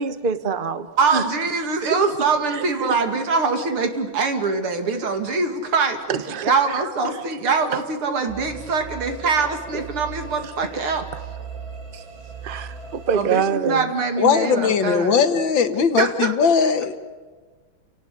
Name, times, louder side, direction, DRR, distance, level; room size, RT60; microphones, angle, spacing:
voice 1, 0.0-1.3 1.9-2.0 2.5-3.0 6.1-7.4 7.7-7.8 9.7-9.8 10.4-10.5 11.1-11.2 11.9-12.0 12.4-13.9, right 6 dB, 35° right, 1.0 m, -26 dB
voice 2, 1.0-6.0 6.4-11.0 13.1-15.2 16.0-16.3, right 4 dB, 85° right, 3.3 m, -23 dB
sound 1, 8.3-13.3, right 5 dB, 65° right, 4.1 m, -37 dB
voice 3, 14.2-17.0, left 6 dB, 65° left, 2.0 m, -19 dB
29.5 x 18.5 x 8.4 m
omnidirectional pair, 2.3 m